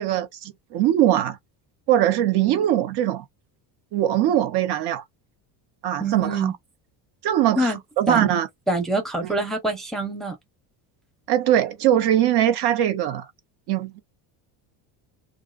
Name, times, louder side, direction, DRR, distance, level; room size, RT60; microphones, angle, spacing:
voice 1, 0.0-1.4 1.9-3.2 3.9-5.0 5.8-6.5 7.2-8.5 11.3-13.3 13.7-14.0, right 11 dB, 55° right, 0.7 m, -21 dB
voice 2, 6.0-6.5 7.6-7.8 8.1-8.3 8.7-10.4, right 2 dB, ahead, 0.5 m, -25 dB
2.4 x 2.4 x 2.3 m
cardioid pair, 125°, 47 cm